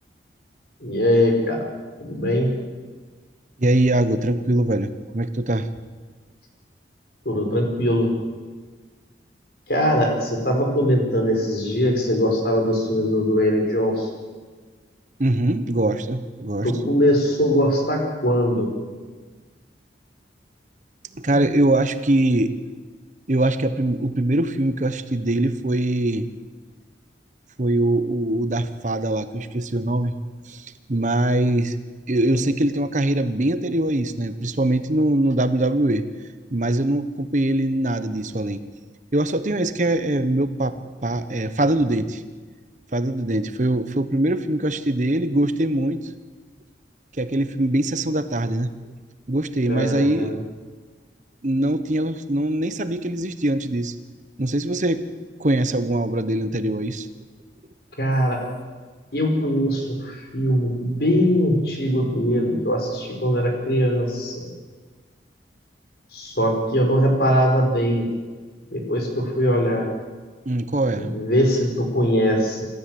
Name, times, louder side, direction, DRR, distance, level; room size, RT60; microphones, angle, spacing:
voice 1, 0.8-1.6 2.0-2.5 7.2-8.1 9.7-14.1 16.6-18.7 49.7-50.4 58.0-58.4 59.1-64.5 66.1-68.1 68.7-69.9 71.0-72.7, equal, 60° left, 3 dB, 4.9 m, -21 dB
voice 2, 3.6-5.7 15.2-16.7 21.2-22.5 23.3-26.3 27.6-30.1 30.5-31.8 32.1-36.1 36.5-38.6 39.1-40.8 41.0-42.2 42.9-46.1 47.1-48.7 49.3-50.4 51.4-53.9 54.4-55.1 55.4-57.1 70.4-71.1, right 1 dB, 45° right, 11 dB, 1.0 m, -22 dB
26.0 x 13.5 x 7.8 m, 1.4 s
head